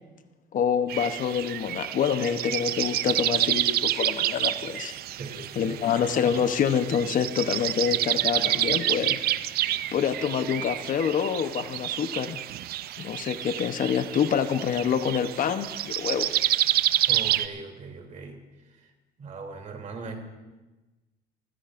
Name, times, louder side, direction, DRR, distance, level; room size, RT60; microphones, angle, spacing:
voice 1, 0.5-4.9 5.5-9.2 9.9-12.4 13.0-16.3, left 7 dB, 55° left, 10 dB, 0.8 m, -26 dB
sound 1, 0.9-17.5, right 13 dB, 65° right, 0.5 m, -28 dB
voice 2, 5.2-5.7 17.1-18.4 19.2-20.2, right 4 dB, 45° right, 2 dB, 3.0 m, -39 dB
24.5 x 15.5 x 2.5 m, 1.1 s
cardioid pair, 110°, 17 cm